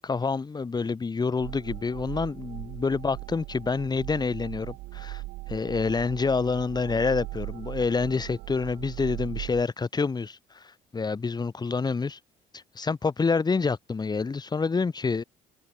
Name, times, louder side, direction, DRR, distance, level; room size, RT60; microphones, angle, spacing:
voice 1, 0.0-5.2 5.5-12.2 12.5-15.2, left 4 dB, 25° left, 2.2 m, -27 dB
sound 1, 1.4-9.6, right 21 dB, 90° right, 1.4 m, -39 dB
cardioid pair, 110°, 17 cm